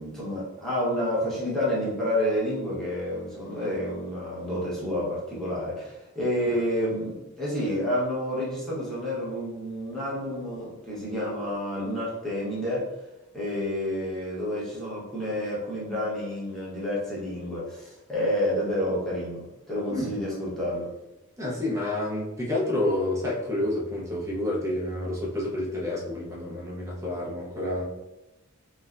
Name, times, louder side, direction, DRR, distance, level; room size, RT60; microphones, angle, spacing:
voice 1, 0.0-12.9 13.3-20.9, left 1 dB, ahead, -8 dB, 0.9 m, -29 dB
voice 2, 21.4-27.8, left 1 dB, 15° right, -4 dB, 0.6 m, -29 dB
3.1 x 2.1 x 2.4 m, 0.98 s
head